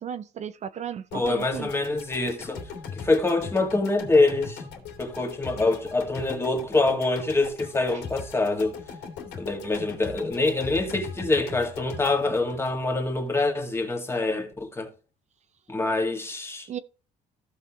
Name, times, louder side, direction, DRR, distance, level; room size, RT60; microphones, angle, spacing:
voice 1, 0.0-1.7 16.7-16.8, right 9 dB, 45° right, 0.5 m, -35 dB
sound 1, 1.1-13.3, left 6 dB, 80° left, 2.6 m, -40 dB
voice 2, 1.1-4.6 5.0-8.8 9.4-14.9 15.7-16.8, left 2 dB, 15° left, 2.0 m, -25 dB
15.0 x 5.7 x 3.0 m
cardioid pair, 110°, 17 cm